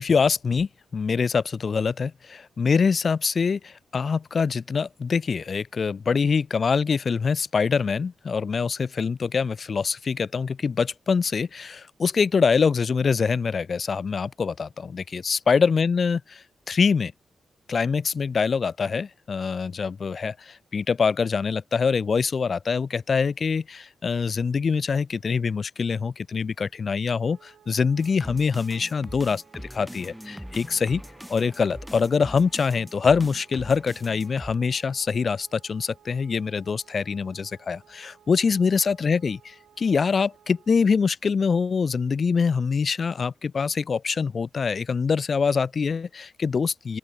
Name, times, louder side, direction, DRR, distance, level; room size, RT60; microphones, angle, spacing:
voice 1, 0.0-17.1 17.7-31.0 31.3-47.0, left 5 dB, 50° left, 1.1 m, -24 dB
Wind instrument woodwind instrument, 27.3-40.7, right 9 dB, 90° right, 4.4 m, -57 dB
sound 1, 28.0-34.5, equal, ahead, 1.3 m, -41 dB
sound 2, 31.2-31.4 31.8-32.0 32.4-32.6 33.0-33.2 33.6-33.8, right 7 dB, 70° right, 7.4 m, -62 dB
open air
cardioid pair, 80°, 0 cm